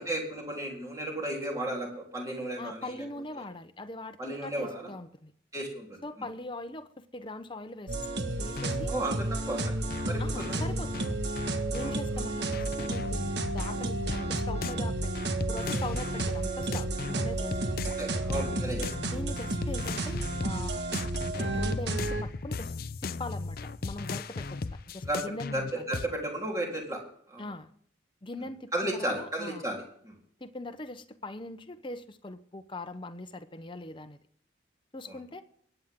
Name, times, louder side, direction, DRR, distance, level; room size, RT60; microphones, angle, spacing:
voice 1, 0.0-2.9 4.2-4.9 5.5-6.0 8.9-9.7 10.1-10.5 11.8-12.0 18.0-19.1 25.0-25.3 25.5-27.0 27.3-27.5 28.7-30.1 35.1-35.2, right 1 dB, 20° right, -1 dB, 3.7 m, -34 dB
voice 2, 2.6-5.3 6.0-8.9 10.2-11.1 11.7-15.1 15.5-18.0 19.0-20.8 21.3-22.7 23.0-25.9 27.4-27.7 28.2-29.7 30.4-34.2 34.9-35.4, left 2 dB, 25° left, 9 dB, 0.9 m, -41 dB
sound 1, 7.9-22.2, right 2 dB, 60° right, 1.5 m, -32 dB
sound 2, 8.6-8.9 9.9-12.0 12.5-18.0 18.3-20.7 20.9-26.1, left 3 dB, 50° left, 0.5 m, -37 dB
23.0 x 9.1 x 3.8 m, 0.63 s
head